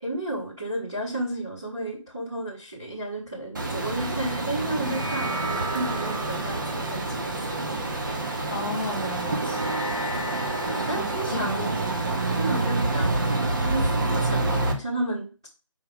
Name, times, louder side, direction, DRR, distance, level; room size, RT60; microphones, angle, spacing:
voice 1, 0.0-7.7 10.6-11.8 12.4-13.2 13.7-15.5, right 1 dB, 10° right, -7 dB, 0.5 m, -32 dB
sound 1, 3.5-14.7, right 2 dB, 35° right, 1.1 m, -28 dB
sound 2, 4.5-13.2, right 2 dB, 60° right, 3.3 m, -36 dB
voice 2, 8.5-9.8 10.9-11.7, left 1 dB, 20° left, -2 dB, 1.4 m, -34 dB
6.5 x 4.9 x 3.5 m, 0.32 s
figure-of-eight pair, 175°, 17 cm